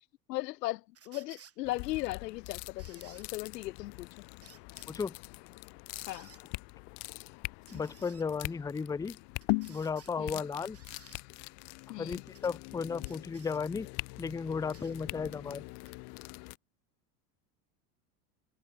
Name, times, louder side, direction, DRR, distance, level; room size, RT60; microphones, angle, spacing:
voice 1, 0.3-4.1 6.1-6.3 10.2-10.4 11.9-12.2, left 18 dB, 85° left, 0.7 m, -37 dB
sound 1, 0.9-1.6 2.8-3.3 4.4-4.9 6.0-6.4 7.7-8.3 9.4-10.1 10.7-11.2 12.3-12.5 13.0-13.6 14.7-15.0 15.9-16.0, right 8 dB, 30° right, 4.4 m, -57 dB
sound 2, 1.6-16.6, left 36 dB, 60° left, 1.4 m, -42 dB
voice 2, 7.7-9.2 9.7-10.8 12.0-13.9 14.2-15.6, left 5 dB, 10° left, 0.5 m, -35 dB
hypercardioid pair, 95°, 47 cm